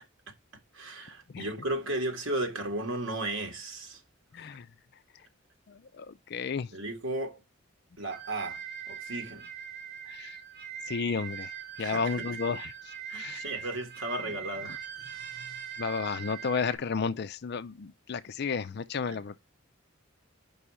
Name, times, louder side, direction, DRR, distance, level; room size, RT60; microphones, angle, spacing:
voice 1, 0.7-4.0 4.4-4.5 6.7-7.4 8.0-8.6 8.9-9.5 11.8-12.1 13.1-14.8 19.1-19.2, right 1 dB, 80° right, 2.0 m, -34 dB
voice 2, 4.3-4.7 5.7-6.7 10.1-10.4 10.9-11.5 11.8-13.4 15.8-19.5, left 5 dB, 55° left, 0.4 m, -33 dB
sound 1, 8.1-16.8, right 8 dB, 55° right, 3.1 m, -41 dB
5.6 x 5.5 x 4.8 m
head